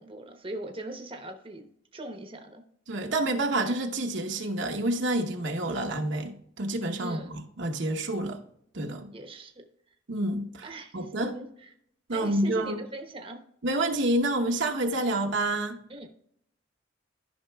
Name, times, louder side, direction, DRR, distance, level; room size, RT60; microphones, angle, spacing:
voice 1, 0.0-2.6 7.0-7.4 9.1-9.6 10.6-11.7 12.1-13.4 15.9-16.1, right 1 dB, 25° right, 4 dB, 0.9 m, -40 dB
voice 2, 2.9-8.4 8.7-9.1 10.1-10.7 10.9-11.3 12.1-12.8 13.6-15.8, right 1 dB, 60° right, 3 dB, 0.9 m, -28 dB
13.0 x 5.8 x 2.3 m, 0.69 s
head